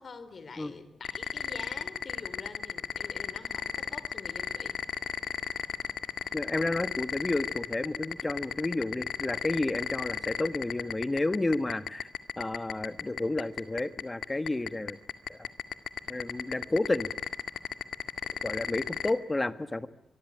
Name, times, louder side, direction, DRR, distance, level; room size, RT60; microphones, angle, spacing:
voice 1, 0.0-4.8, left 4 dB, 50° left, 13 dB, 3.6 m, -46 dB
sound 1, 1.0-19.1, left 8 dB, 75° left, 2.0 m, -33 dB
voice 2, 6.3-12.1 12.4-15.0 15.3-15.4 16.1-17.1 18.4-19.9, left 2 dB, 20° left, 12 dB, 1.5 m, -31 dB
25.0 x 23.0 x 10.0 m, 0.74 s
wide cardioid pair, 140°, 0 cm